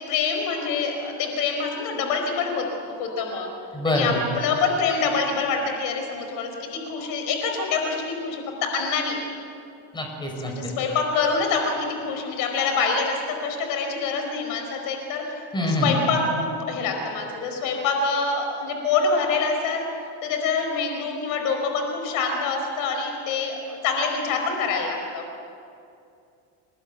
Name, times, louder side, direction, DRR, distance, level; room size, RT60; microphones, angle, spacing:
voice 1, 0.1-2.7 3.0-3.5 3.8-9.2 10.4-19.9 20.2-25.2, left 4 dB, 70° left, 3 dB, 5.0 m, -26 dB
voice 2, 3.7-4.2 9.9-10.5 15.5-15.9, left 1 dB, 15° left, 2 dB, 6.0 m, -24 dB
29.0 x 20.5 x 9.2 m, 2.5 s
cardioid pair, 135°, 33 cm